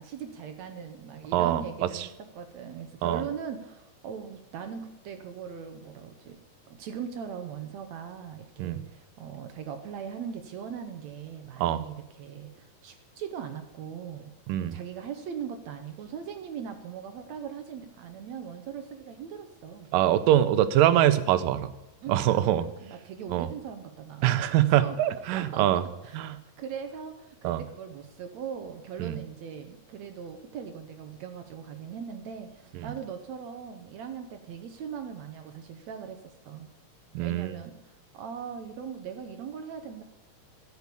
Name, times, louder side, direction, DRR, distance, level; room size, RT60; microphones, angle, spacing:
voice 1, 0.0-6.4 6.7-14.3 14.6-19.9 22.0-22.5 22.8-24.4 24.8-25.7 26.0-26.2 26.6-36.7 37.2-40.0, right 7 dB, 65° right, 7 dB, 2.0 m, -40 dB
voice 2, 1.3-2.1 3.0-3.2 8.6-8.8 11.6-11.8 14.5-14.8 19.9-21.7 22.1-22.7 23.3-23.5 24.2-25.8 26.1-26.4 27.4-27.6 29.0-29.2 37.1-37.6, right 12 dB, 90° right, 12 dB, 2.5 m, -24 dB
12.5 x 8.5 x 8.4 m, 0.95 s
omnidirectional pair, 3.8 m